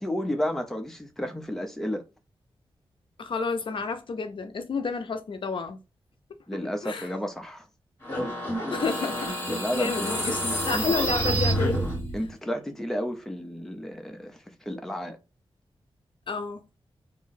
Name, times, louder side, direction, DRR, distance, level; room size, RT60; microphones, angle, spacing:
voice 1, 0.0-2.0 6.5-7.7 9.5-11.0 12.1-15.2, equal, 5° left, 0.6 m, -32 dB
voice 2, 3.2-5.8 6.8-7.1 8.7-11.8 16.3-16.6, left 4 dB, 60° left, 0.5 m, -30 dB
sound 1, 8.0-12.3, right 1 dB, 25° left, 1.8 m, -28 dB
3.0 x 2.6 x 3.9 m
wide cardioid pair, 155°, 10 cm